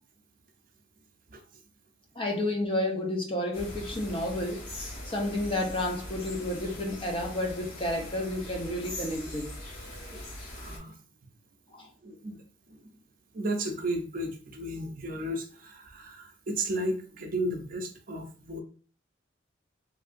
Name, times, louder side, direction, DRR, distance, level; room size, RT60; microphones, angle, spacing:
voice 1, 2.2-9.5 11.7-11.9, left 1 dB, 25° left, 1 dB, 0.6 m, -31 dB
sound 1, 3.5-10.8, left 1 dB, 50° left, 1.1 m, -41 dB
voice 2, 9.9-10.2 10.5-11.0 12.0-12.8 13.3-18.6, right 1 dB, 45° right, 3 dB, 0.5 m, -34 dB
3.2 x 2.7 x 2.5 m, 0.40 s
head